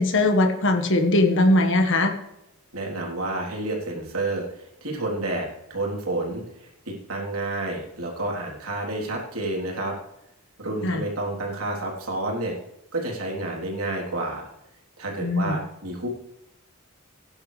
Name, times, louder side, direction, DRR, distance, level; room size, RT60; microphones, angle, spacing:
voice 1, 0.0-2.1 10.8-11.0 15.2-15.6, left 2 dB, 55° left, 4 dB, 1.6 m, -20 dB
voice 2, 2.7-10.0 10.6-12.5 12.9-14.5 15.0-16.1, right 2 dB, 80° right, -1 dB, 3.6 m, -30 dB
17.0 x 10.5 x 3.4 m, 0.87 s
head